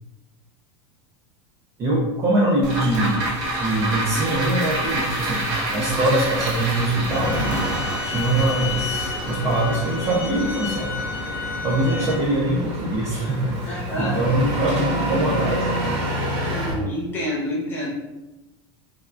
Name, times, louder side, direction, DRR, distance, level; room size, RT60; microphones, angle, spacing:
voice 1, 1.8-7.4 7.6-7.8 8.0-10.9 11.6-15.6, right 1 dB, 20° right, -5 dB, 0.3 m, -23 dB
sound 1, 2.6-13.1 13.5-13.6, right 1 dB, 80° right, 0.9 m, -29 dB
Engine, 5.4-16.8, equal, 45° right, 1.1 m, -29 dB
sound 2, 7.1-12.1, left 5 dB, 65° left, 0.8 m, -32 dB
voice 2, 13.7-14.2 16.5-17.9, left 1 dB, 15° left, -6 dB, 0.7 m, -28 dB
3.2 x 2.2 x 2.3 m, 1.1 s
supercardioid pair, 175°, 14 cm